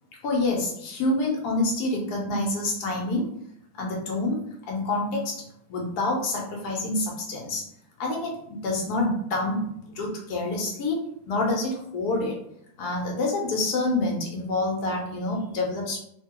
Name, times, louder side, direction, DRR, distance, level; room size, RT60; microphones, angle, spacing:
voice 1, 0.2-3.3 3.7-5.4 5.7-7.7 8.0-11.0 11.3-12.4 12.8-16.0, left 2 dB, 85° left, -1 dB, 1.2 m, -27 dB
2.8 x 2.6 x 2.8 m, 0.74 s
omnidirectional pair, 1.6 m